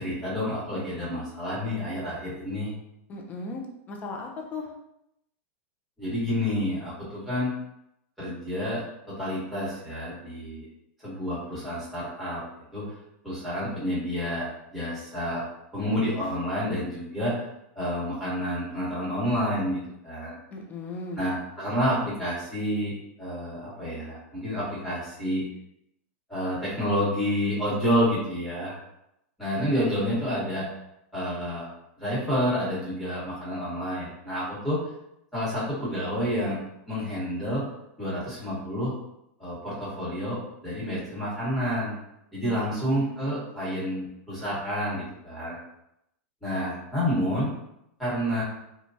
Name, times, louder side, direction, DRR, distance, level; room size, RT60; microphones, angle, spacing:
voice 1, 0.0-2.7 6.0-7.5 8.2-10.7 11.0-12.4 12.7-12.8 13.2-15.4 15.7-17.3 17.7-19.8 20.0-20.3 21.2-25.4 26.3-28.7 29.4-30.7 31.1-31.6 32.0-34.8 35.3-36.6 36.9-37.6 38.0-38.9 39.4-41.9 42.3-45.5 46.4-47.5 48.0-48.4, equal, ahead, -10 dB, 1.2 m, -29 dB
voice 2, 3.1-4.7 20.5-21.3 42.4-43.4, left 2 dB, 20° left, 2 dB, 0.4 m, -37 dB
3.1 x 2.2 x 2.6 m, 0.82 s
supercardioid pair, 155°, 7 cm